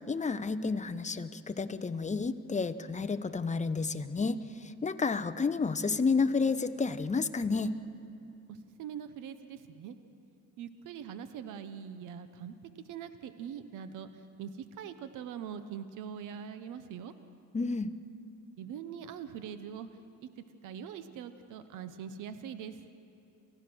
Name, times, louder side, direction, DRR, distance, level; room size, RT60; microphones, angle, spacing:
voice 1, 0.0-7.7 17.5-17.9, left 4 dB, 25° left, 11 dB, 0.9 m, -31 dB
voice 2, 8.5-9.9 10.6-12.5 12.9-14.1 14.4-17.1 18.6-19.9 20.2-20.3 20.6-22.8, right 8 dB, 90° right, 10 dB, 1.0 m, -42 dB
28.5 x 16.0 x 6.2 m, 2.7 s
cardioid pair, 90°, 30 cm